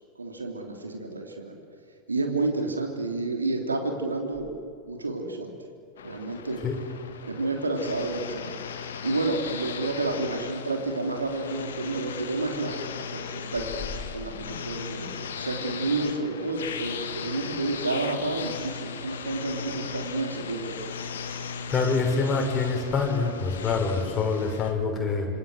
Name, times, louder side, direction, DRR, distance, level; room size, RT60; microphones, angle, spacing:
voice 1, 0.2-1.6 2.1-4.5 4.9-5.5 6.0-6.6 7.3-8.5 9.0-21.0, right 2 dB, 75° right, 3 dB, 3.3 m, -30 dB
sound 1, 6.0-24.7, left 6 dB, 65° left, 2.0 m, -37 dB
voice 2, 21.7-25.3, left 4 dB, 20° left, 0 dB, 6.5 m, -25 dB
27.0 x 25.5 x 7.9 m, 2.3 s
figure-of-eight pair, 90°, 0 cm